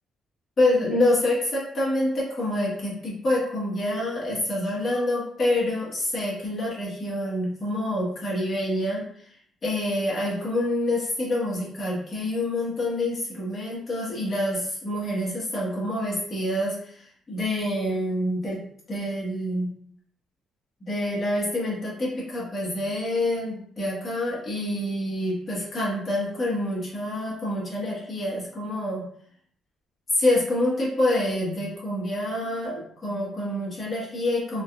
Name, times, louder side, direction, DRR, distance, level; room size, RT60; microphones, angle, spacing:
voice 1, 0.6-9.4 9.6-18.6 18.9-19.7 20.8-29.0 30.1-34.6, left 1 dB, 40° left, -5 dB, 1.4 m, -27 dB
3.8 x 2.4 x 2.5 m, 0.64 s
cardioid pair, 90°, 0 cm